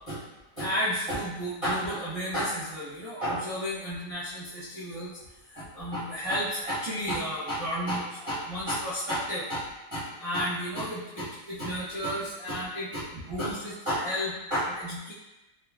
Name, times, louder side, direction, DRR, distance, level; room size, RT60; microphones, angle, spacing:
voice 1, 0.6-5.2 5.5-9.6 9.9-15.1, equal, 35° right, -13 dB, 0.5 m, -32 dB
3.7 x 2.5 x 2.4 m, 0.97 s
omnidirectional pair, 1.8 m